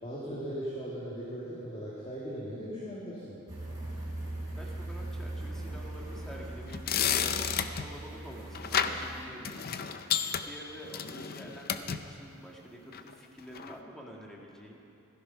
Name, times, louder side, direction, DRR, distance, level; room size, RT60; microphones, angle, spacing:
voice 1, 0.0-3.3, equal, 25° left, -7 dB, 2.1 m, -38 dB
sound 1, 3.5-9.2, right 1 dB, 15° right, 4.4 m, -40 dB
voice 2, 4.6-9.9 10.1-14.8, equal, ahead, -2 dB, 1.8 m, -48 dB
sound 2, 6.6-7.9 8.5-9.1 9.4-12.0 12.9-13.1 13.5-13.7, left 8 dB, 45° left, 0.5 m, -31 dB
15.5 x 13.0 x 5.7 m, 2.8 s
head